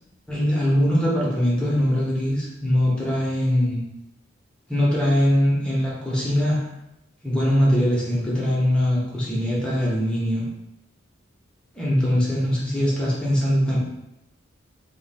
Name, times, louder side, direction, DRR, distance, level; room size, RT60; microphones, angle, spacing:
voice 1, 0.3-3.8 4.7-6.6 7.2-10.4 11.7-13.8, equal, 5° left, -6 dB, 1.1 m, -22 dB
3.0 x 2.8 x 4.2 m, 0.89 s
head